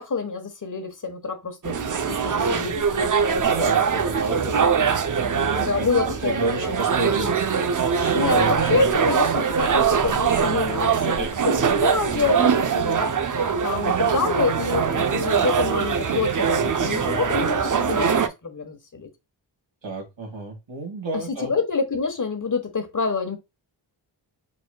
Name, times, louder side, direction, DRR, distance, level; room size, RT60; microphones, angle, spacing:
voice 1, 0.0-1.8 2.1-3.1 5.5-6.7 8.1-19.1 21.1-23.4, left 4 dB, 45° left, 1.2 m, -27 dB
sound 1, 1.6-18.3, right 6 dB, 45° right, 0.6 m, -22 dB
voice 2, 3.4-5.9 6.2-7.4 7.9-8.2 19.8-21.5, right 2 dB, 80° right, 2.1 m, -31 dB
4.7 x 4.2 x 2.3 m
cardioid pair, 50°, 44 cm